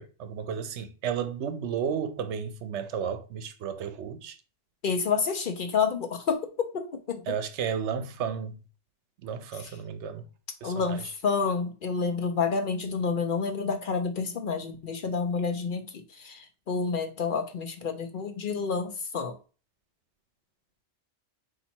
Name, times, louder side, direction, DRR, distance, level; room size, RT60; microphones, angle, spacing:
voice 1, 0.0-4.4 7.3-8.6 9.2-10.3 10.6-11.1, right 7 dB, 80° right, 0.9 m, -33 dB
voice 2, 4.8-7.2 9.5-9.8 10.6-15.8 16.1-19.3, left 5 dB, 55° left, 0.7 m, -29 dB
4.1 x 2.7 x 4.3 m
omnidirectional pair, 1.2 m